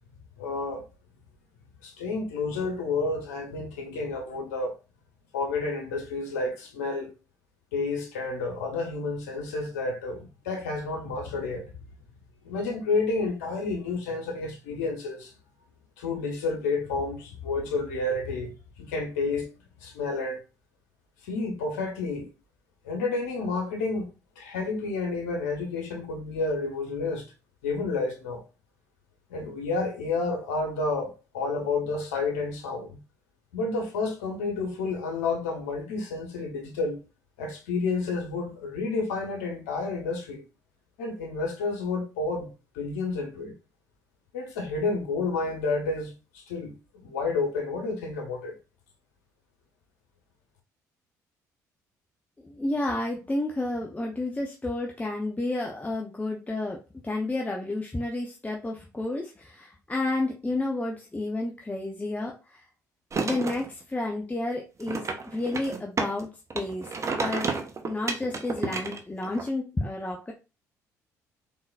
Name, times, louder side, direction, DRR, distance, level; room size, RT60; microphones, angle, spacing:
voice 1, 0.4-0.8 1.8-4.8 5.3-7.1 7.7-11.7 12.4-15.3 16.0-19.5 19.8-20.4 21.3-22.3 22.8-24.1 24.4-27.3 27.6-28.4 29.3-33.0 33.5-37.0 37.4-40.4 41.0-43.5 44.3-48.5, left 3 dB, 80° left, 1.2 m, -30 dB
voice 2, 52.4-62.6 63.2-66.3 66.5-67.5 67.9-70.3, left 2 dB, 15° left, 0.8 m, -31 dB
sound 1, 63.1-63.7 64.8-66.2 66.5-69.5, right 4 dB, 35° right, 0.9 m, -31 dB
3.9 x 3.7 x 2.5 m
hypercardioid pair, 55°, 9 cm